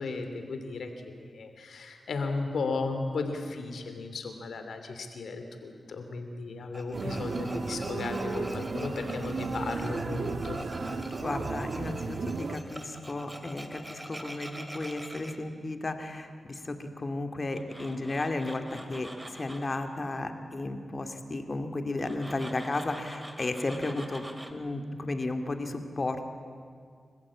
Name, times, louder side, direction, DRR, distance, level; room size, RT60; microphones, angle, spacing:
voice 1, 0.0-10.6, left 3 dB, 80° left, 6 dB, 2.9 m, -35 dB
Tools, 6.7-15.4 17.5-19.8 22.0-24.5, right 1 dB, 15° right, 2.4 m, -45 dB
sound 1, 6.9-12.6, right 3 dB, 65° right, 1.4 m, -34 dB
voice 2, 11.2-26.2, left 2 dB, 40° left, 6 dB, 2.4 m, -34 dB
29.5 x 15.0 x 8.7 m, 2.2 s
cardioid pair, 60°, 0 cm